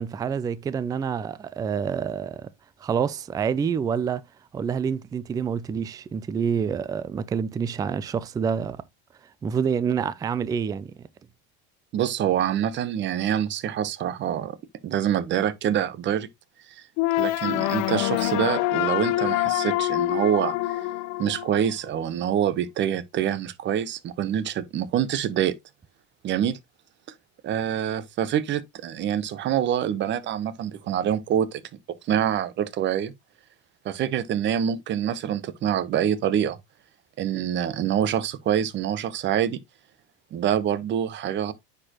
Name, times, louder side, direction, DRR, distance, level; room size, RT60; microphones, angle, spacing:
voice 1, 0.0-2.5 2.8-4.2 4.5-8.8 9.4-10.9, right 7 dB, 10° right, 0.3 m, -27 dB
voice 2, 11.9-14.6 14.8-16.3 17.2-20.8 21.2-25.5 26.2-26.6 27.4-31.6 32.1-33.1 33.8-36.6 37.2-39.6 40.3-41.5, right 9 dB, 35° right, 0.9 m, -26 dB
sound 1, 17.0-22.0, left 17 dB, 60° left, 0.9 m, -25 dB
9.7 x 4.5 x 2.9 m
supercardioid pair, 120°, 31 cm